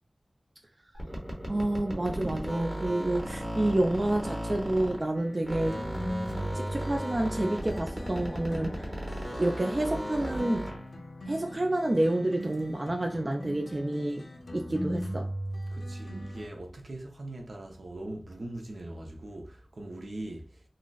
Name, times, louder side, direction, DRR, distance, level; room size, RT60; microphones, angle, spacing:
sound 1, 0.9-5.2 5.4-10.9, equal, 20° right, 1.0 m, -36 dB
voice 1, 1.5-5.8 6.5-8.9 9.4-10.7 11.3-14.2 14.5-15.3, right 1 dB, 40° right, 0.3 m, -29 dB
sound 2, 5.1-16.5, equal, 75° left, 0.6 m, -39 dB
voice 2, 15.7-20.6, right 1 dB, 70° right, 0.7 m, -41 dB
3.8 x 2.0 x 2.3 m
wide cardioid pair, 75°, 0 cm